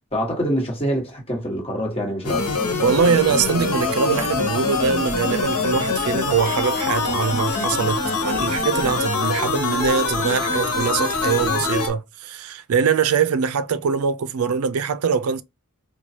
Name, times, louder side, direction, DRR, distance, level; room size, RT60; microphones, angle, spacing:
voice 1, 0.1-2.5, equal, 25° left, 1.3 m, -25 dB
sound 1, 2.2-11.9, left 3 dB, 90° left, 1.1 m, -24 dB
voice 2, 2.8-15.4, right 6 dB, 75° right, 0.4 m, -22 dB
4.6 x 2.2 x 2.7 m
head